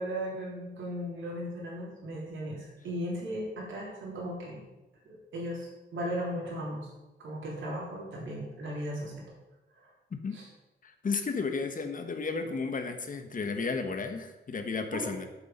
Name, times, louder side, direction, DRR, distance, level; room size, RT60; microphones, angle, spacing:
voice 1, 0.0-4.6 5.1-6.9 7.2-9.3 10.3-10.5 14.9-15.1, equal, 85° right, -4 dB, 3.6 m, -36 dB
voice 2, 10.8-15.3, left 4 dB, 45° left, 7 dB, 1.2 m, -33 dB
8.1 x 7.3 x 5.3 m, 1.0 s
cardioid pair, 100°, 20 cm